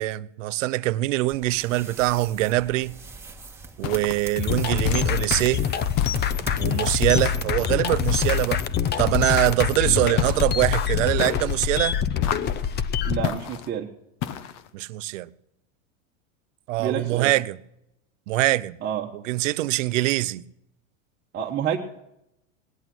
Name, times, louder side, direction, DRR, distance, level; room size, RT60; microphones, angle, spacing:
voice 1, 0.0-3.0 3.8-5.7 6.6-8.6 9.0-12.0 14.7-15.3 16.7-17.6 18.3-18.8 19.3-20.4, right 17 dB, 70° right, 0.8 m, -23 dB
sound 1, 1.3-9.4, right 3 dB, 5° right, 1.9 m, -40 dB
sound 2, 3.8-4.3 4.8-5.4 6.0-6.6 7.1-7.5 8.1-8.6 10.2-10.7 11.2-11.7 12.2-12.7 13.2-13.7 14.2-14.7, left 10 dB, 45° left, 1.2 m, -32 dB
sound 3, 4.4-13.2, left 9 dB, 25° left, 0.8 m, -25 dB
voice 2, 13.1-13.9 16.8-17.3 18.8-19.1 21.3-21.8, right 8 dB, 25° right, 1.4 m, -28 dB
18.5 x 11.0 x 6.2 m
supercardioid pair, 125°, 39 cm